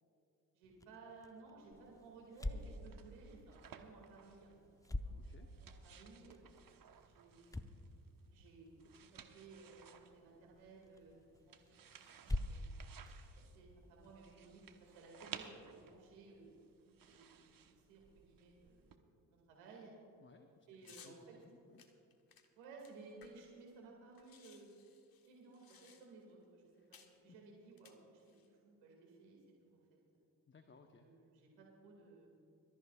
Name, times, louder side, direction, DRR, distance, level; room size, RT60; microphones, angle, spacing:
voice 1, 0.5-6.4 7.0-7.6 8.3-8.7 9.0-11.2 11.5-11.9 12.2-12.6 13.1-16.6 17.0-18.9 19.3-19.9 20.7-21.4 22.5-24.7 25.3-29.4 29.6-30.0 31.0-32.3, right 3 dB, 80° right, -1 dB, 2.3 m, -58 dB
sound 1, 0.6-14.2, left 1 dB, 5° left, 0.7 m, -48 dB
sound 2, 1.7-19.0, right 7 dB, 45° right, 1.1 m, -59 dB
voice 2, 5.1-5.5 20.2-21.9 26.7-27.0 27.3-27.4 30.5-31.1, left 4 dB, 25° left, 6 dB, 0.9 m, -63 dB
sound 3, 20.8-21.2 21.8-23.6 23.9-24.0 24.1-26.3 26.9-27.2 27.7-28.5, left 7 dB, 45° left, 1.5 m, -62 dB
24.0 x 13.5 x 2.4 m, 2.7 s
hypercardioid pair, 50°, 48 cm